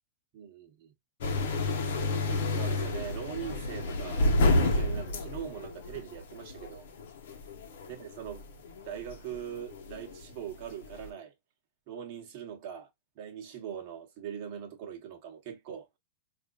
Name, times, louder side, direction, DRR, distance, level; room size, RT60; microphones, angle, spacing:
voice 1, 0.3-0.9 2.0-6.9 7.9-8.4 8.8-11.3 11.9-12.9 13.2-15.9, right 9 dB, 35° right, 1.0 m, -41 dB
sound 1, 1.2-11.1, left 2 dB, 60° left, 0.9 m, -30 dB
4.9 x 2.5 x 2.3 m
supercardioid pair, 180°, 0 cm